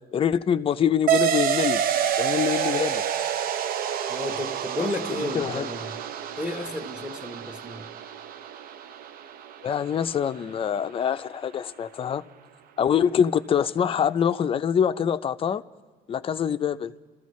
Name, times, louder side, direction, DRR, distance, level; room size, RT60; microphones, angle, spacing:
voice 1, 0.1-1.8 2.2-3.0 4.8-4.9 5.3-5.7 9.6-12.2 12.8-15.6 16.1-16.9, left 8 dB, 35° left, 0.5 m, -24 dB
sound 1, 1.1-10.1, right 9 dB, 60° right, 0.5 m, -28 dB
voice 2, 4.1-6.0 6.4-7.9, left 2 dB, 5° right, 1.1 m, -33 dB
28.5 x 14.0 x 3.1 m
cardioid pair, 110°, 17 cm